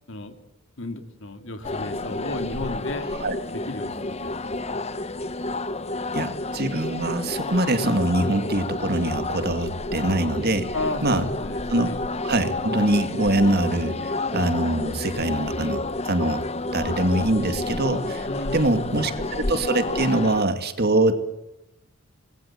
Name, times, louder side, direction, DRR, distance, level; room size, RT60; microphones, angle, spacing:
voice 1, 0.8-3.1 3.7-4.8 10.7-12.0 18.3-19.2, left 2 dB, 60° left, 8 dB, 2.8 m, -34 dB
sound 1, 1.6-20.4, left 2 dB, 30° left, 1.0 m, -30 dB
voice 2, 6.1-10.7 11.0-11.2 11.7-11.9 12.2-16.5 16.7-18.3 18.5-21.1, right 2 dB, 50° right, 9 dB, 2.4 m, -23 dB
26.5 x 20.5 x 8.8 m, 0.87 s
head